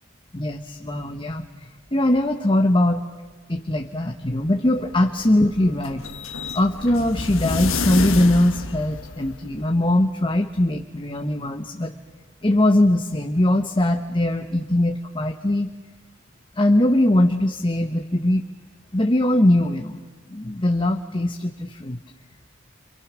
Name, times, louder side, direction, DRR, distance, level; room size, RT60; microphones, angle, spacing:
voice 1, 0.3-3.1 3.5-6.0 6.5-11.9 12.4-15.7 16.6-18.4 18.9-20.0 20.3-22.0, left 1 dB, 25° left, 5 dB, 1.1 m, -21 dB
sound 1, 4.6-9.6, left 3 dB, 80° left, 1.4 m, -29 dB
29.5 x 26.5 x 6.2 m, 1.3 s
head